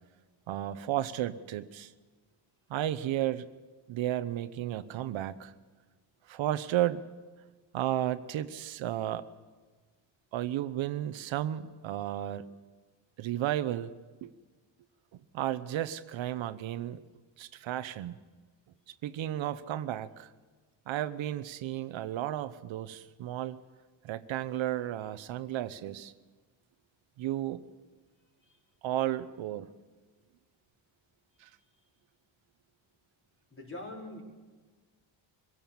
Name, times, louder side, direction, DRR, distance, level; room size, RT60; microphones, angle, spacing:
voice 1, 0.5-1.9 2.7-3.5 3.9-5.5 6.3-7.0 7.7-9.3 10.3-12.5 13.2-13.9 14.2-14.3 15.3-17.0 17.4-18.2 19.0-20.3 20.9-23.6 24.0-26.1 27.2-27.6 28.8-29.7 31.4-31.5, right 12 dB, 70° right, 13 dB, 0.9 m, -33 dB
voice 2, 33.5-34.2, left 2 dB, 25° left, -1 dB, 4.7 m, -43 dB
24.0 x 16.5 x 7.2 m, 1.4 s
cardioid pair, 130°, 47 cm